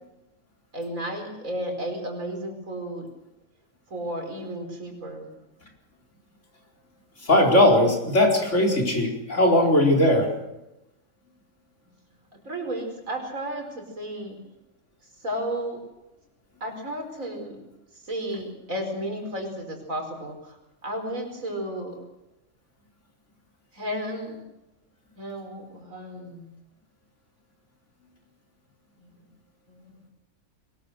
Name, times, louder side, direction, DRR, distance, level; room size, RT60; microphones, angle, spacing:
voice 1, 0.7-3.1 3.9-5.3 12.3-14.4 15.2-15.8 16.6-17.6 17.9-20.6 20.8-22.0 23.7-24.4 25.2-26.5 29.0-29.1 29.7-30.0, right 1 dB, 85° right, 3 dB, 5.0 m, -33 dB
voice 2, 7.2-10.3, left 1 dB, 65° left, 0 dB, 4.8 m, -19 dB
22.5 x 20.5 x 6.6 m, 0.92 s
omnidirectional pair, 1.4 m